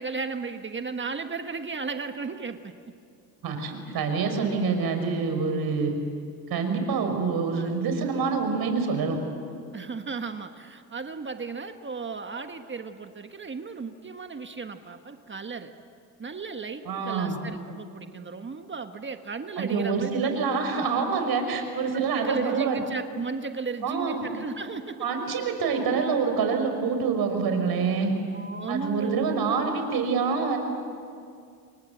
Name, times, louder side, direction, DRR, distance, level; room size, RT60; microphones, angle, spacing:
voice 1, 0.0-2.7 3.9-4.0 7.5-7.8 9.7-15.7 16.2-20.9 21.9-25.1 28.3-29.3, right 4 dB, 30° right, 7 dB, 1.4 m, -35 dB
voice 2, 3.4-5.9 6.5-9.2 16.9-17.4 19.6-22.8 23.8-24.3 25.0-28.1 28.7-30.6, right 5 dB, 60° right, 5 dB, 5.3 m, -26 dB
28.0 x 23.5 x 8.0 m, 2.3 s
supercardioid pair, 85°, 41 cm